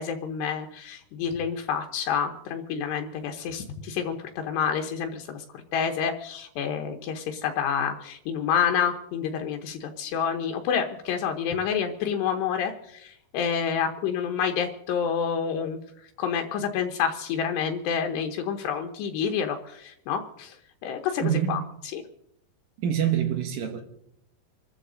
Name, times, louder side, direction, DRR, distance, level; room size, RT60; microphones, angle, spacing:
voice 1, 0.0-5.4 5.7-15.8 16.2-20.6 20.8-21.6 21.9-22.0, left 7 dB, 80° left, 3.1 m, -28 dB
voice 2, 21.2-21.7 22.8-23.8, right 9 dB, 65° right, 2.7 m, -26 dB
26.5 x 13.5 x 3.9 m
omnidirectional pair, 5.0 m